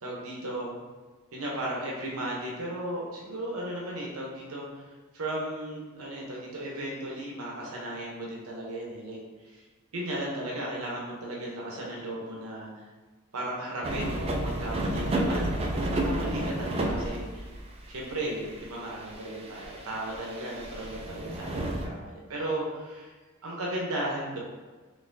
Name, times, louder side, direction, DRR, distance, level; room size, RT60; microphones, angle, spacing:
voice 1, 0.0-0.7 1.3-9.6 9.9-12.7 13.3-17.6 17.9-23.1 23.4-24.4, right 1 dB, 90° right, -3 dB, 0.8 m, -35 dB
sound 1, 13.8-17.7 18.0-21.9, right 1 dB, 30° right, 0.4 m, -31 dB
3.9 x 3.2 x 2.6 m, 1.3 s
head